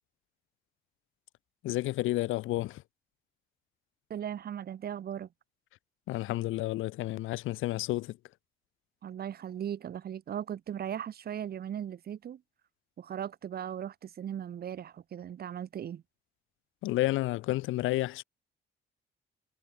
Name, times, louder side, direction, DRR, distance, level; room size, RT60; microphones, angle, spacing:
voice 1, 1.6-2.8 6.1-8.2 16.8-18.2, left 17 dB, 90° left, 0.9 m, -31 dB
voice 2, 4.1-5.3 9.0-12.4 13.0-16.0, right 9 dB, 50° right, 0.8 m, -38 dB
cardioid pair, 90°, 20 cm